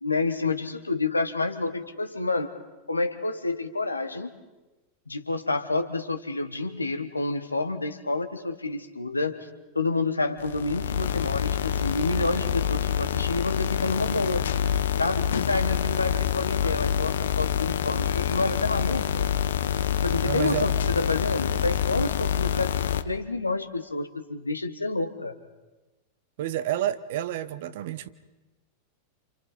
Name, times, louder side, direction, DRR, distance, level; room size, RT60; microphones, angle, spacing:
voice 1, 0.0-2.5 2.9-4.3 5.1-9.5 9.7-14.5 15.0-19.3 20.0-25.4, left 3 dB, 80° left, 8 dB, 1.5 m, -29 dB
sound 1, 10.4-23.0, left 9 dB, 65° left, 0.9 m, -26 dB
voice 2, 20.2-20.6 26.4-28.1, right 12 dB, 55° right, 14 dB, 1.0 m, -29 dB
28.5 x 28.0 x 4.3 m, 1.1 s
figure-of-eight pair, 90°, 0 cm